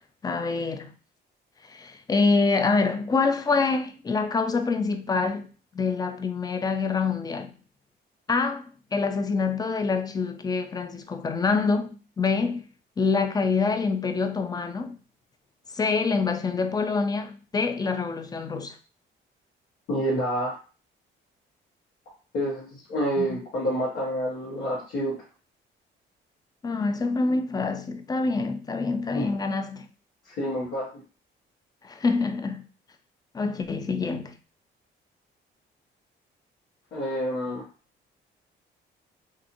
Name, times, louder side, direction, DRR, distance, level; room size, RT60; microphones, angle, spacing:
voice 1, 0.2-0.9 1.6-7.5 8.3-12.7 13.0-15.0 15.7-18.8 23.2-23.4 26.6-29.9 31.8-32.6 33.3-34.4, left 4 dB, 20° left, 0.3 m, -26 dB
voice 2, 19.9-20.6 22.3-25.2 29.2-29.3 30.3-31.0 36.9-37.7, equal, 90° left, 1.1 m, -28 dB
2.7 x 2.6 x 2.5 m
cardioid pair, 90°, 20 cm